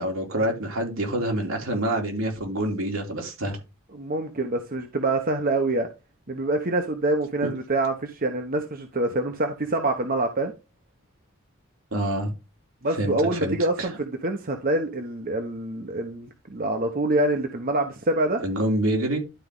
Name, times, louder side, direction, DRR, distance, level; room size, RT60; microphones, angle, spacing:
voice 1, 0.0-3.6 7.4-7.5 11.9-12.3 12.9-13.9 18.4-19.2, right 1 dB, 80° right, 2.9 m, -27 dB
voice 2, 3.9-5.9 6.3-10.5 12.8-18.4, right 2 dB, 45° right, 1.0 m, -26 dB
11.5 x 4.7 x 3.8 m
head